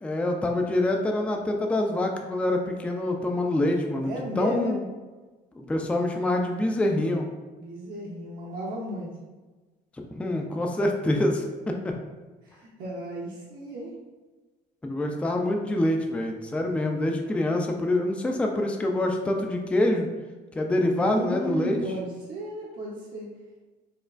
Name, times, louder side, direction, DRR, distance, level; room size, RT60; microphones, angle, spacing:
voice 1, 0.0-4.8 5.6-7.3 10.1-11.5 11.8-11.9 14.8-20.1 20.6-21.8, left 1 dB, 5° left, 2 dB, 0.3 m, -26 dB
voice 2, 4.0-4.8 7.6-9.1 12.4-13.9 20.9-23.3, equal, 60° right, -5 dB, 0.7 m, -34 dB
4.3 x 2.3 x 2.4 m, 1.3 s
cardioid pair, 110°, 17 cm